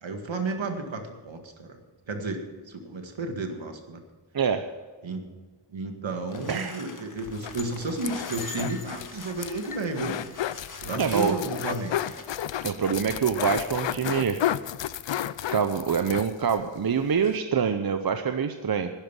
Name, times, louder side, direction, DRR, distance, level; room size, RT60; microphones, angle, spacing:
voice 1, 0.0-1.8 2.1-4.0 5.0-5.3 5.7-10.2 10.8-12.1, right 3 dB, 70° right, 5 dB, 1.9 m, -32 dB
sound 1, 6.3-12.3, left 4 dB, 40° left, 1.6 m, -43 dB
voice 2, 6.5-6.8 11.0-11.4 12.6-14.4 15.5-18.9, right 6 dB, 50° right, 8 dB, 0.8 m, -25 dB
sound 2, 7.3-16.6 16.9-17.0 17.2-17.4, left 11 dB, 65° left, 0.6 m, -33 dB
12.5 x 10.0 x 7.3 m, 1.3 s
cardioid pair, 60°, 48 cm